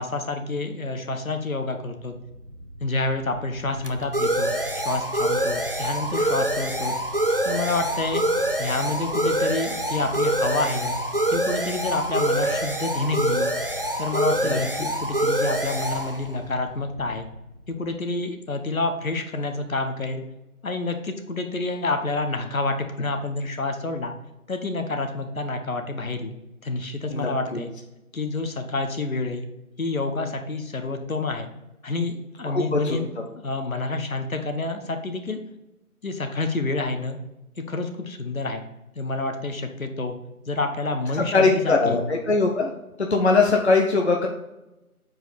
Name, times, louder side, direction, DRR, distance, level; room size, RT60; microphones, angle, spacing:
voice 1, 0.0-2.1 2.8-6.9 7.4-8.2 8.6-11.0 11.3-13.5 14.0-17.3 17.7-20.2 20.6-24.1 24.5-26.4 26.6-27.7 28.1-29.5 29.8-31.5 31.8-33.1 33.4-35.4 36.0-37.2 37.7-38.6 38.9-40.1 40.5-42.0, left 3 dB, 65° left, 6 dB, 1.2 m, -28 dB
sound 1, 2.3-17.6, right 1 dB, 40° right, 0.5 m, -26 dB
voice 2, 27.1-27.6 32.4-33.0 41.3-42.7 43.0-44.3, left 3 dB, 45° left, 1 dB, 0.9 m, -21 dB
8.2 x 4.7 x 4.2 m, 0.95 s
figure-of-eight pair, 170°, 44 cm